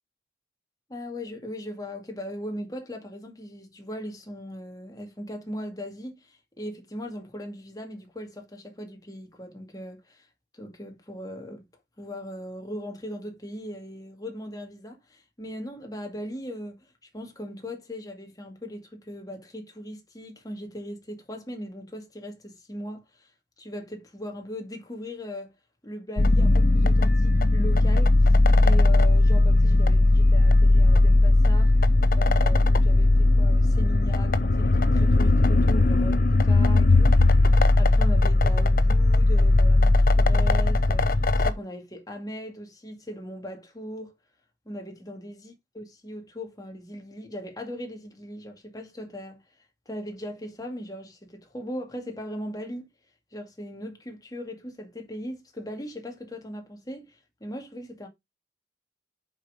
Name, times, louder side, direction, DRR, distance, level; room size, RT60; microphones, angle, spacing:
voice 1, 0.9-10.3 10.5-11.6 12.0-16.9 17.1-23.3 23.6-25.5 25.8-28.4 28.6-31.7 32.1-37.2 37.7-44.1 44.7-49.4 49.9-52.9 53.3-58.1, equal, 20° left, 2.3 m, -39 dB
sound 1, 26.2-41.5, left 2 dB, 50° left, 0.8 m, -18 dB
7.7 x 5.5 x 4.9 m
head